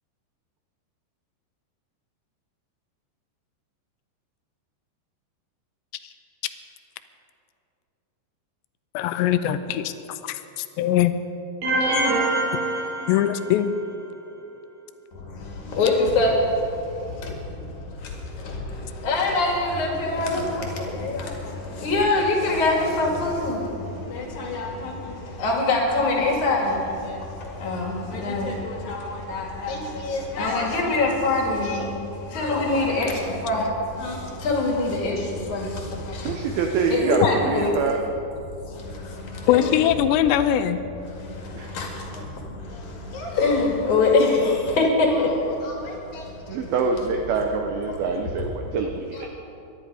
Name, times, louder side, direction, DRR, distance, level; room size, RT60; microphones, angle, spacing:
voice 1, 8.9-11.1 13.1-13.7 39.5-40.8, left 11 dB, 80° left, 11 dB, 2.7 m, -22 dB
sound 1, 11.6-13.7, right 2 dB, 50° right, 4.4 m, -24 dB
voice 2, 15.7-16.3 19.0-20.7 21.0-21.2 21.8-23.6 24.1-24.9 25.4-26.8 27.6-31.9 32.3-33.1 33.4-33.6 34.0-34.2 34.4-35.2 35.5-35.7 36.9-37.7 39.5-39.8 41.7-41.9 43.1-44.8 45.1-45.3 45.6-45.7, left 3 dB, 50° left, 0 dB, 3.0 m, -23 dB
voice 3, 36.2-38.0 41.5-41.8 46.5-49.3, right 5 dB, 80° right, 4 dB, 2.2 m, -25 dB
23.0 x 11.5 x 4.9 m, 2.7 s
omnidirectional pair, 5.3 m